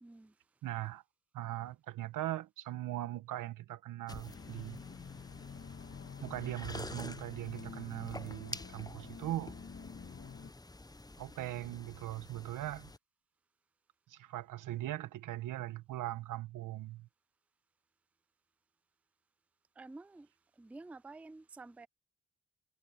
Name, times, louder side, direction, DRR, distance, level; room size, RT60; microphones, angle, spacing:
voice 1, 0.0-0.3 19.8-20.3 20.6-21.9, right 3 dB, 5° right, 0.4 m, -50 dB
voice 2, 0.6-1.0 1.3-4.8 6.2-9.5 11.2-12.9 14.1-17.1, right 14 dB, 80° right, 1.2 m, -40 dB
sound 1, 4.1-13.0, left 2 dB, 10° left, 1.0 m, -49 dB
sound 2, 4.2-10.5, left 6 dB, 45° left, 2.0 m, -49 dB
supercardioid pair, 50°, 31 cm